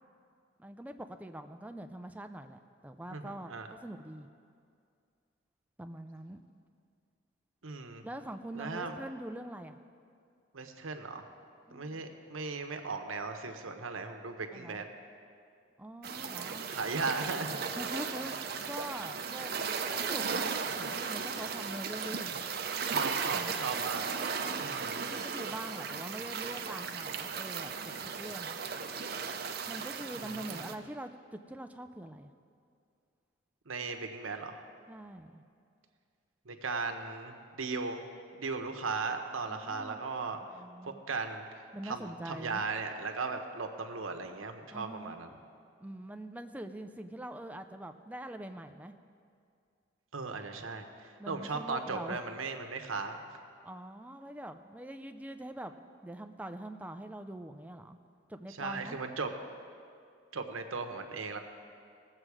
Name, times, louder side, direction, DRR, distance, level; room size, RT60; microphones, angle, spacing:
voice 1, 0.6-4.3 5.8-6.4 8.0-9.8 11.7-12.2 14.5-14.8 15.8-16.7 17.7-19.5 19.9-22.4 23.2-23.5 24.4-24.8 25.1-28.5 29.7-32.3 34.9-35.4 39.5-40.0 40.5-41.0 41.7-42.6 44.7-45.2 45.8-48.9 51.2-52.2 53.6-55.7 56.0-58.0 58.3-59.0, right 1 dB, 5° right, 7 dB, 0.4 m, -44 dB
voice 2, 3.1-3.7 7.6-8.1 8.5-9.0 10.5-11.2 11.7-14.9 16.7-17.8 22.8-24.1 24.6-25.0 30.2-30.7 33.7-34.6 36.4-38.0 38.3-40.4 41.1-41.4 41.8-45.3 50.1-53.2 58.5-59.3 60.3-61.4, right 4 dB, 85° right, 6 dB, 1.0 m, -37 dB
sound 1, 16.0-30.8, right 5 dB, 50° right, 0.6 m, -36 dB
18.5 x 7.7 x 4.8 m, 2.3 s
head